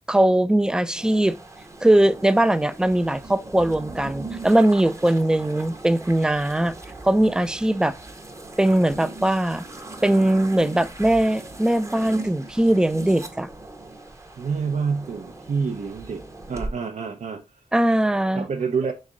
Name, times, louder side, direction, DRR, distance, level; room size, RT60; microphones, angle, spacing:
voice 1, 0.1-1.4 1.8-6.7 7.0-8.0 8.6-9.6 10.0-13.5 17.7-18.5, right 1 dB, 5° right, 0.3 m, -20 dB
sound 1, 1.0-16.7, right 2 dB, 20° right, 0.8 m, -39 dB
voice 2, 14.4-17.6 18.3-18.9, right 5 dB, 65° right, 0.5 m, -28 dB
3.5 x 3.2 x 3.7 m
cardioid pair, 60°, 13 cm